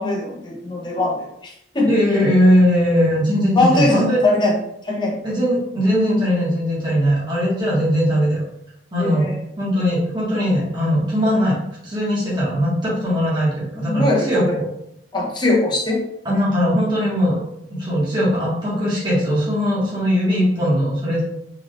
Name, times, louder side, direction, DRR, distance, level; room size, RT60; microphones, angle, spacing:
voice 1, 0.0-1.9 3.5-4.6 4.8-5.2 9.0-9.4 13.9-14.6 15.1-16.1, left 2 dB, 25° left, -1 dB, 0.8 m, -21 dB
voice 2, 1.8-4.2 5.2-8.4 8.9-9.3 9.6-14.7 16.2-17.4 17.8-21.2, equal, 25° right, -8 dB, 1.3 m, -19 dB
3.9 x 2.6 x 3.1 m, 0.77 s
head